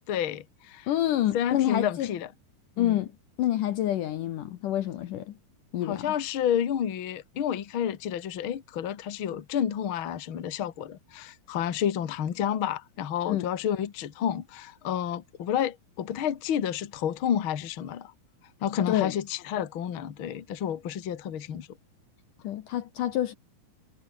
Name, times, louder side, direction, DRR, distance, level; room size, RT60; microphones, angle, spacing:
voice 1, 0.1-0.9 1.3-2.3 2.8-3.1 5.8-18.1 18.6-21.7, left 9 dB, 45° left, 1.9 m, -30 dB
voice 2, 0.9-2.1 2.8-3.1 3.4-5.3 5.7-6.0 13.3-13.5 18.9-19.1 22.4-23.3, left 12 dB, 70° left, 2.4 m, -27 dB
omnidirectional pair, 4.4 m